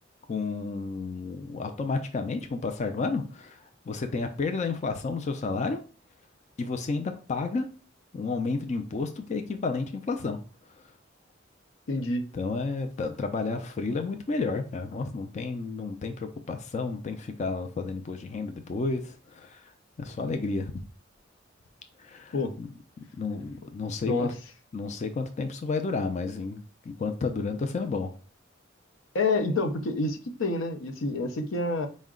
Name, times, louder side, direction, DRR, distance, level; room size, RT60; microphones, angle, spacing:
voice 1, 0.3-5.8 6.6-7.7 8.1-10.4 12.3-19.7 20.0-20.7 22.0-22.7 23.2-24.3 24.7-28.1, left 4 dB, 35° left, 0.4 m, -31 dB
voice 2, 11.9-12.3 22.3-22.5 24.1-24.3 29.1-31.9, left 3 dB, 85° left, 0.6 m, -28 dB
4.6 x 2.1 x 3.6 m
head